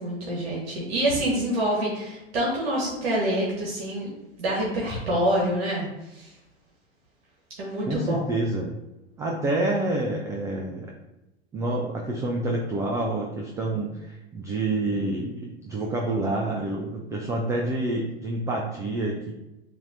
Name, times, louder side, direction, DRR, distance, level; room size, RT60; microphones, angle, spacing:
voice 1, 0.0-4.1 4.4-6.3 7.6-8.2, right 1 dB, 65° right, -4 dB, 1.4 m, -26 dB
voice 2, 7.9-8.7 9.2-10.9 11.5-19.3, right 2 dB, 10° right, 0 dB, 0.3 m, -28 dB
7.2 x 2.7 x 2.6 m, 0.95 s
figure-of-eight pair, 95°, 32 cm